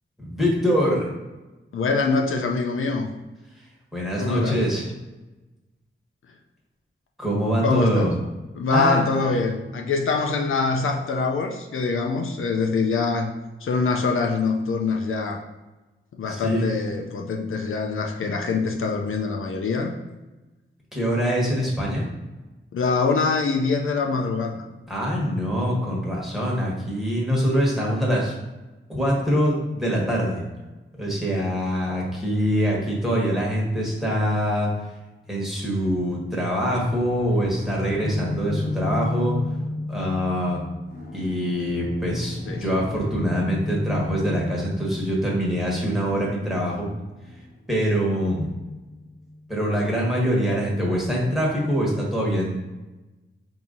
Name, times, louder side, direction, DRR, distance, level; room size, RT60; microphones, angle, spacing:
voice 1, 0.2-1.1 3.9-4.8 7.2-8.1 8.7-9.0 16.3-16.6 20.9-22.0 24.9-28.3 28.9-30.4 31.0-34.7 35.3-39.4 39.9-40.6 41.1-46.9 47.7-48.5 49.5-52.6, equal, ahead, -4 dB, 1.2 m, -24 dB
voice 2, 1.7-3.1 4.2-4.6 7.6-8.1 8.5-13.3 13.6-15.4 16.1-19.9 22.7-24.6 31.3-31.5 42.5-42.7, left 4 dB, 80° left, 2 dB, 0.5 m, -24 dB
sound 1, 36.6-49.4, left 2 dB, 55° left, 1.2 m, -33 dB
4.3 x 2.8 x 3.7 m, 1.1 s
wide cardioid pair, 115°, 21 cm